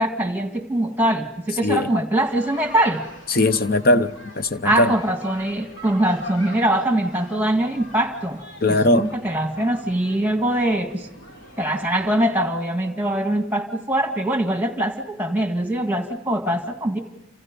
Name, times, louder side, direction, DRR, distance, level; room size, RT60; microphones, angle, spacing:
voice 1, 0.0-3.0 4.6-8.4 8.7-11.1 11.6-17.0, right 1 dB, 10° right, 2.0 m, -22 dB
sound 1, 2.2-12.3, left 1 dB, 65° left, 4.3 m, -43 dB
voice 2, 3.3-4.9 8.6-9.2, left 1 dB, 45° left, 0.9 m, -19 dB
29.5 x 27.0 x 5.4 m
head